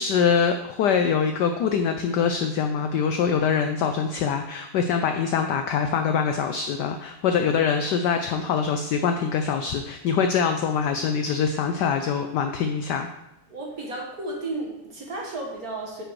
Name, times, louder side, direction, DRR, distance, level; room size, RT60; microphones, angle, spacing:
voice 1, 0.0-13.1, left 6 dB, 80° left, 6 dB, 0.9 m, -24 dB
voice 2, 13.5-16.0, right 2 dB, 45° right, -1 dB, 1.8 m, -33 dB
9.0 x 5.0 x 4.7 m, 0.92 s
omnidirectional pair, 2.4 m